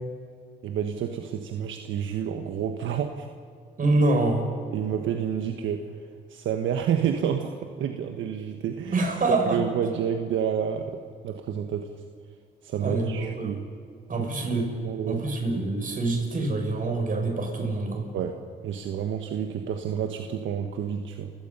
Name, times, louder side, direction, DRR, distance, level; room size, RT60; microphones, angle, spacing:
voice 1, 0.6-3.3 4.7-5.9 6.3-11.9 12.6-13.7 14.2-14.3 14.8-15.2 18.1-18.4 18.6-21.3, right 8 dB, 75° right, 5 dB, 1.4 m, -29 dB
voice 2, 3.8-4.4 8.9-9.6 12.8-13.5 14.1-14.7 15.1-18.1, right 2 dB, 45° right, 2 dB, 6.2 m, -25 dB
29.5 x 17.0 x 5.6 m, 2.3 s
cardioid pair, 90°, 20 cm